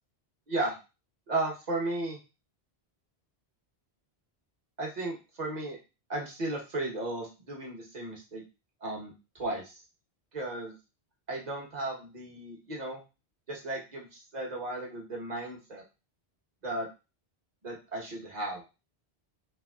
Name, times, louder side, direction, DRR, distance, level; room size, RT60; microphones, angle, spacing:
voice 1, 1.3-2.2 4.8-5.8 6.1-8.4 8.8-9.1 9.4-9.8 10.3-10.7 11.3-13.0 13.5-15.8 16.6-16.9 17.6-18.7, right 2 dB, 45° right, -1 dB, 1.1 m, -35 dB
3.4 x 3.4 x 2.3 m, 0.29 s
omnidirectional pair, 1.1 m